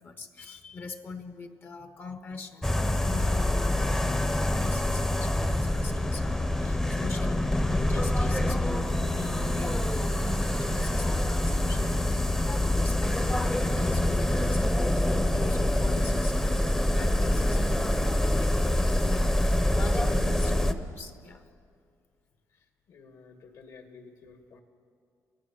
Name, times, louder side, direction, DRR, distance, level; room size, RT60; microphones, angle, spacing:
voice 1, 0.0-21.5, left 4 dB, 35° left, 8 dB, 0.9 m, -41 dB
sound 1, 2.6-20.7, left 1 dB, 10° left, 0.8 m, -26 dB
voice 2, 22.5-24.6, left 4 dB, 65° left, 5 dB, 2.2 m, -52 dB
28.0 x 17.0 x 5.8 m, 2.2 s
cardioid pair, 155°, 6 cm